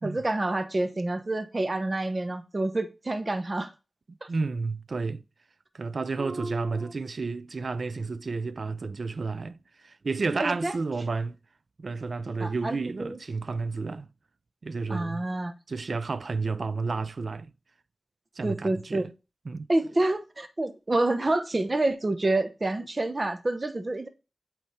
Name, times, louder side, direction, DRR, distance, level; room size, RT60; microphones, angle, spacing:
voice 1, 0.0-3.7 4.2-4.3 6.2-6.9 10.4-10.7 12.4-13.2 14.9-15.5 18.4-19.1 19.7-24.1, right 2 dB, 35° right, 0.9 m, -28 dB
voice 2, 4.3-5.2 5.7-11.4 11.8-14.1 14.6-15.2 15.7-17.5 18.4-19.1 19.5-19.7, right 4 dB, 65° right, 0.4 m, -31 dB
8.5 x 3.4 x 4.2 m
wide cardioid pair, 70°, 0 cm